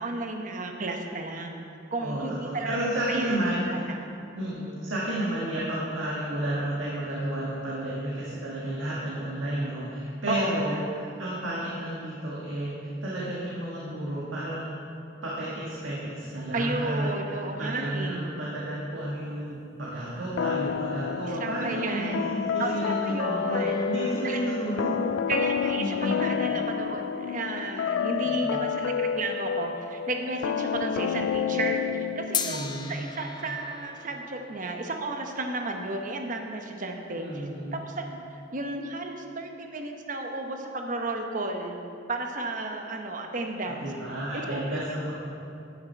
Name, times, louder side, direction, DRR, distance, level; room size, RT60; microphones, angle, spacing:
voice 1, 0.0-1.6 1.9-2.7 3.1-4.1 10.3-10.8 16.5-18.3 21.2-22.2 22.6-23.8 24.2-24.6 25.3-37.4 37.7-41.8 42.1-43.9 44.3-44.6, right 2 dB, 40° right, 3 dB, 0.9 m, -33 dB
voice 2, 2.0-3.8 4.3-14.6 15.2-25.0 25.8-26.2 28.2-28.6 32.4-33.0 37.1-37.9 43.6-45.1, right 1 dB, 80° right, -6 dB, 1.7 m, -31 dB
sound 1, 20.4-32.8, left 7 dB, 80° left, 0.3 m, -29 dB
sound 2, 23.6-30.1 32.3-36.8, left 6 dB, 20° left, 0.5 m, -40 dB
11.0 x 9.6 x 4.5 m, 2.6 s
head